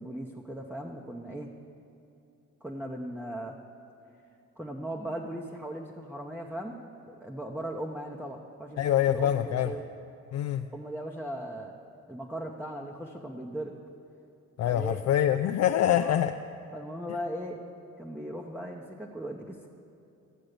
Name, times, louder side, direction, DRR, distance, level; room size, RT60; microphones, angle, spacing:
voice 1, 0.0-1.5 2.6-3.6 4.6-6.8 7.1-9.8 10.7-11.7 12.1-13.7 14.6-15.0 15.9-16.3 16.7-17.6 18.0-19.7, right 1 dB, 5° right, -1 dB, 0.9 m, -38 dB
voice 2, 8.8-9.7 10.3-10.7 14.6-16.3, left 11 dB, 55° left, 6 dB, 0.5 m, -25 dB
14.5 x 7.5 x 6.7 m, 2.8 s
cardioid pair, 90°, 30 cm